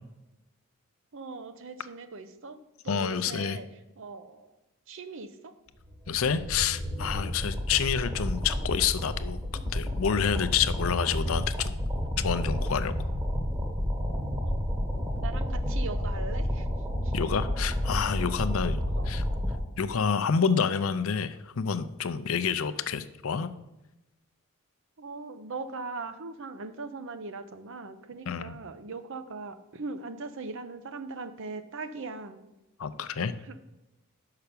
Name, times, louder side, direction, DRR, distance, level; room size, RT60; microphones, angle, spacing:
voice 1, 1.1-2.6 2.8-3.7 4.0-4.5 4.9-5.5 14.4-14.6 15.2-16.7 17.0-17.1 18.9-19.1 25.0-32.4 33.5-33.6, right 3 dB, 60° right, 10 dB, 0.7 m, -40 dB
voice 2, 2.9-3.6 6.1-11.8 12.2-12.9 17.1-19.2 19.8-23.5 28.3-28.6 32.8-33.3, left 7 dB, 70° left, 12 dB, 0.5 m, -28 dB
sound 1, 5.8-19.6, equal, 15° right, 1.2 m, -30 dB
5.8 x 5.7 x 6.7 m, 0.97 s
head